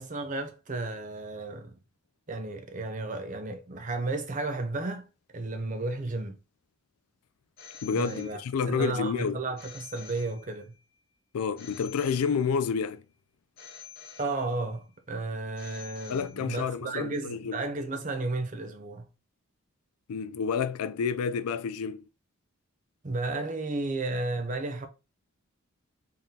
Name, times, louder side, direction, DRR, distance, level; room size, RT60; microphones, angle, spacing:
voice 1, 0.0-1.8 2.3-5.1 5.3-6.4 7.9-8.4 8.7-10.7 14.2-19.1 23.0-24.9, right 2 dB, 35° right, 0.6 m, -33 dB
Telephone, 7.6-8.8 9.6-10.8 11.6-12.8 13.6-14.8 15.6-16.8, left 7 dB, 45° left, 0.8 m, -49 dB
voice 2, 7.8-9.4 11.3-13.0 16.1-17.6 20.1-22.0, left 6 dB, 80° left, 0.4 m, -29 dB
3.6 x 3.6 x 2.8 m
head